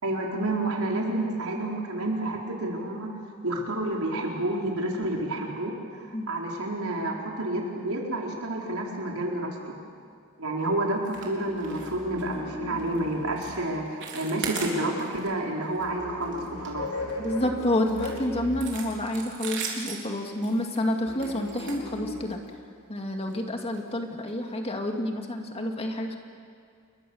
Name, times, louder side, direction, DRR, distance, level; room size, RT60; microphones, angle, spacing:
voice 1, 0.0-3.1 3.4-9.8 10.4-17.1, right 1 dB, 80° right, -1 dB, 4.4 m, -30 dB
sound 1, 11.0-11.3 11.6-11.9 12.2-12.4 12.8-13.0 13.4-13.6 13.9-15.3 15.6-15.8 16.2-17.3 17.9-22.5 23.2-23.4 23.7-23.8 24.3-24.4, right 5 dB, 55° right, 4.3 m, -38 dB
sound 2, 11.1-13.6 15.8-18.9 21.1-22.3, left 2 dB, 85° left, 5.4 m, -38 dB
voice 2, 17.2-22.4 22.9-26.2, left 1 dB, 25° left, 3 dB, 2.2 m, -29 dB
29.0 x 22.0 x 7.1 m, 2.2 s
head